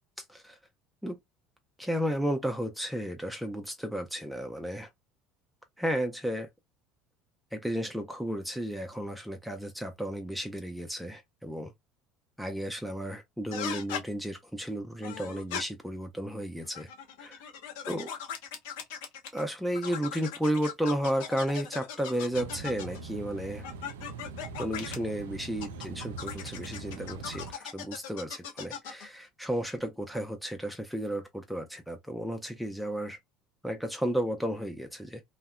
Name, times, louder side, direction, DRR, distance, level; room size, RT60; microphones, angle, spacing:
voice 1, 0.2-0.6 1.0-1.2 1.8-4.9 5.8-6.5 7.5-11.7 12.4-16.9 17.2-17.4 17.9-18.1 19.3-23.6 24.6-33.2 33.6-35.2, equal, 5° right, 0.4 m, -33 dB
sound 1, 13.5-14.0 15.0-15.6 16.6-19.4 19.7-23.0 23.6-25.0 25.6-29.1, left 8 dB, 75° left, 0.7 m, -39 dB
sound 2, 22.3-27.5, right 4 dB, 80° right, 0.3 m, -42 dB
2.6 x 2.0 x 2.3 m
hypercardioid pair, 70°, 0 cm